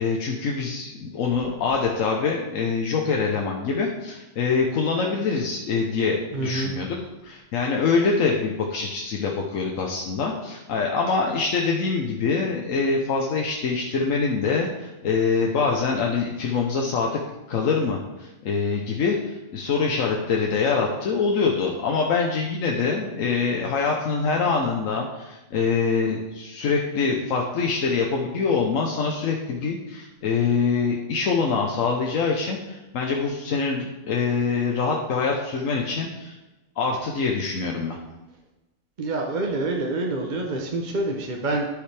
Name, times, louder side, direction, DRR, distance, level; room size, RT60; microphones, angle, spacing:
voice 1, 0.0-6.9 7.2-17.2 17.5-36.3 36.8-38.0, left 4 dB, 90° left, 0 dB, 1.2 m, -24 dB
voice 2, 6.3-6.7 39.0-41.6, right 2 dB, 40° right, 1 dB, 0.8 m, -27 dB
11.5 x 4.9 x 3.4 m, 1.1 s
omnidirectional pair, 1.3 m